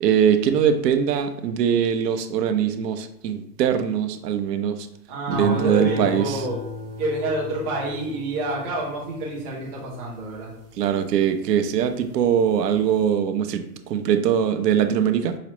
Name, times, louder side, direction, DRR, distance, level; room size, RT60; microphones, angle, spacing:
voice 1, 0.0-4.9 5.3-6.5 10.8-15.4, right 8 dB, 80° right, 8 dB, 0.6 m, -22 dB
voice 2, 5.1-6.6 7.0-10.5, right 2 dB, 15° right, -5 dB, 0.4 m, -28 dB
sound 1, 5.3-11.8 12.3-12.8, left 3 dB, 40° right, 0.9 m, -35 dB
4.8 x 2.0 x 3.0 m, 0.76 s
hypercardioid pair, 150°, 48 cm